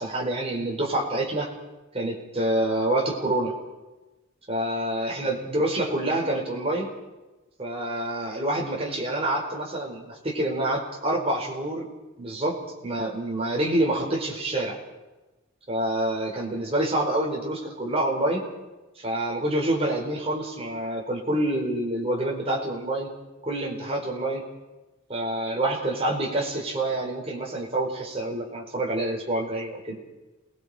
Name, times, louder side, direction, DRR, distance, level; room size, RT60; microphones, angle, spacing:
voice 1, 0.0-1.5 1.9-3.6 4.5-6.9 7.6-11.9 12.2-14.8 15.7-18.5 19.0-23.1 23.4-24.4 25.1-30.0, right 1 dB, 30° right, -1 dB, 4.5 m, -27 dB
28.0 x 20.5 x 5.1 m, 1.1 s
head